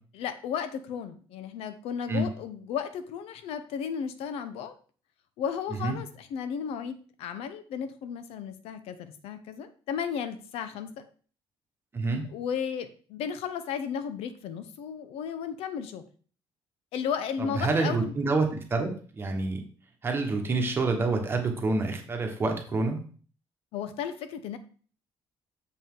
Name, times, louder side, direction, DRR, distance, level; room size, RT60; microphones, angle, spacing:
voice 1, 0.1-4.8 5.4-11.0 12.3-16.1 16.9-18.1 23.7-24.6, left 7 dB, 85° left, 10 dB, 0.7 m, -34 dB
voice 2, 17.5-18.9 19.2-19.6 20.0-23.0, right 3 dB, 25° right, 3 dB, 1.2 m, -27 dB
6.9 x 5.4 x 3.7 m, 0.41 s
cardioid pair, 160°, 10 cm